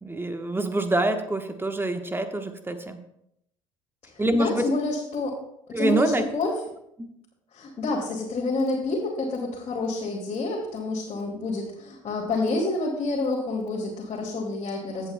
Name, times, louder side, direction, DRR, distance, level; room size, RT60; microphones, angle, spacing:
voice 1, 0.0-3.0 4.2-4.7 5.7-6.2 7.0-7.1, right 2 dB, 10° right, 8 dB, 1.1 m, -26 dB
voice 2, 4.1-5.4 5.8-6.5 7.5-15.1, left 2 dB, 35° left, -4 dB, 2.2 m, -28 dB
16.0 x 7.9 x 2.2 m, 0.76 s
figure-of-eight pair, 60°, 18 cm